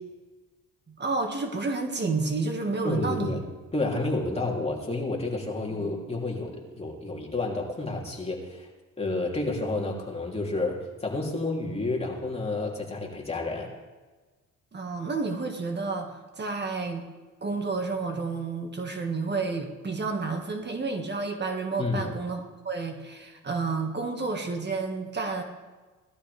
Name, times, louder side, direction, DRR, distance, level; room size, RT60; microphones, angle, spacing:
voice 1, 0.9-3.3 5.8-6.0 14.7-17.0 17.4-25.4, right 4 dB, 35° right, 4 dB, 1.8 m, -30 dB
voice 2, 2.8-3.4 3.7-8.7 9.0-13.7 21.8-22.1, left 2 dB, 20° left, -2 dB, 3.1 m, -30 dB
18.0 x 12.5 x 3.4 m, 1.3 s
cardioid pair, 90°, 30 cm